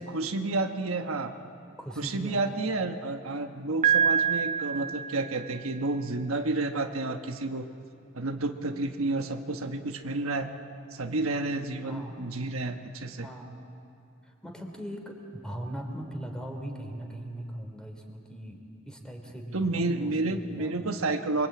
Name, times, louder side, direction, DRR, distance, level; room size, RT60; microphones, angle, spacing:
voice 1, 0.0-1.3 2.0-7.7 8.1-10.5 10.9-13.3 19.5-21.5, right 2 dB, 85° right, 6 dB, 1.2 m, -30 dB
voice 2, 1.8-2.7 11.9-12.2 13.2-13.5 14.2-20.9, right 1 dB, 5° left, 3 dB, 3.3 m, -40 dB
Piano, 3.8-5.8, right 8 dB, 35° right, 0.6 m, -26 dB
28.0 x 23.0 x 8.6 m, 2.6 s
head